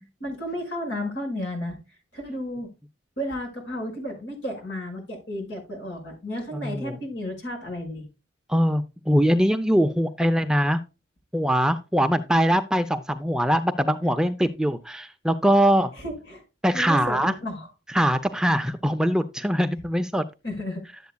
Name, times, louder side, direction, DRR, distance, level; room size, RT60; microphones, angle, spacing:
voice 1, 0.2-1.8 2.1-2.7 3.2-8.1 15.9-16.4 16.7-17.7 20.4-20.8, left 1 dB, 65° left, 3 dB, 5.5 m, -32 dB
voice 2, 6.5-6.9 8.5-10.8 11.3-15.9 16.6-17.3 17.9-20.2, equal, 5° right, 8 dB, 0.5 m, -22 dB
11.5 x 8.2 x 2.2 m, 0.28 s
head